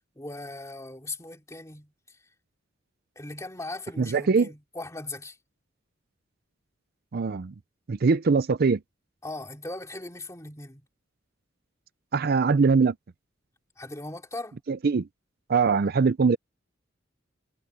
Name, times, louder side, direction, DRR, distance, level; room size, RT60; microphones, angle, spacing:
voice 1, 0.1-2.2 3.1-5.4 9.2-10.9 13.8-14.6, left 2 dB, 15° left, 2.9 m, -39 dB
voice 2, 4.0-4.5 7.1-7.5 7.9-8.8 12.1-12.9 14.7-15.0 15.5-16.4, right 4 dB, 50° right, 0.5 m, -22 dB
head